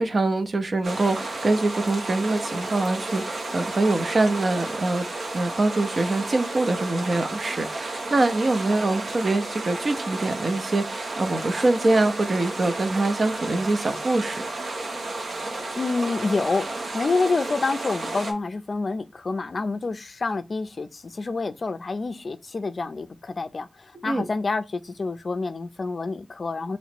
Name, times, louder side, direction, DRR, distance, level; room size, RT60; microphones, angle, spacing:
voice 1, 0.0-5.1 5.3-14.4 24.1-24.3, right 2 dB, 50° right, 0.5 m, -24 dB
sound 1, 0.8-18.3, right 2 dB, 80° right, 0.8 m, -32 dB
voice 2, 15.8-26.8, left 3 dB, 50° left, 0.4 m, -28 dB
3.0 x 2.9 x 4.3 m
wide cardioid pair, 110°, 0 cm